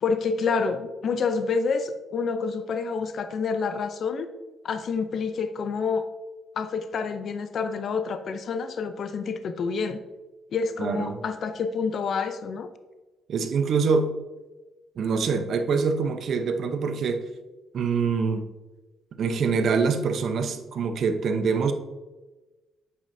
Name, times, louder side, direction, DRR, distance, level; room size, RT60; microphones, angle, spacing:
voice 1, 0.0-4.3 4.6-6.1 6.6-10.0 10.5-12.7, left 5 dB, 60° left, 9 dB, 0.5 m, -28 dB
voice 2, 10.8-11.2 13.3-14.1 15.0-17.2 17.7-18.4 19.2-21.7, right 5 dB, 60° right, 8 dB, 0.7 m, -25 dB
8.4 x 5.3 x 2.7 m, 1.2 s
cardioid pair, 90°, 0 cm